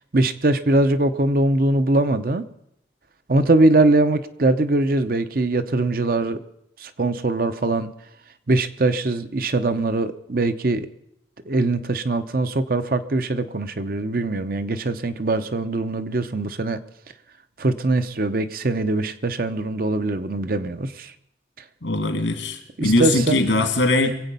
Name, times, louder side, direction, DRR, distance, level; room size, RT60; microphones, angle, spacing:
voice 1, 0.1-2.4 3.3-6.4 6.8-7.9 8.5-10.9 11.5-16.8 17.6-21.1 22.8-23.4, right 2 dB, 50° right, 10 dB, 0.7 m, -22 dB
voice 2, 21.8-24.1, left 2 dB, 85° left, 7 dB, 2.3 m, -21 dB
23.0 x 8.2 x 5.4 m, 0.77 s
head